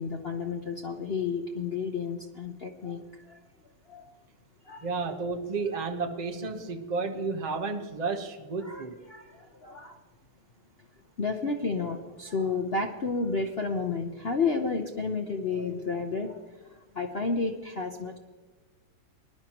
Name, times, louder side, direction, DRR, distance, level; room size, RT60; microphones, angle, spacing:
voice 1, 0.0-3.0 3.3-3.4 3.9-4.0 4.7-4.9 5.7-5.8 8.6-10.0 11.2-16.4 16.9-18.2, left 4 dB, 55° left, 2 dB, 0.6 m, -31 dB
voice 2, 4.8-8.9, right 4 dB, 30° right, 4 dB, 0.9 m, -32 dB
21.0 x 11.5 x 3.0 m, 1.4 s
omnidirectional pair, 2.3 m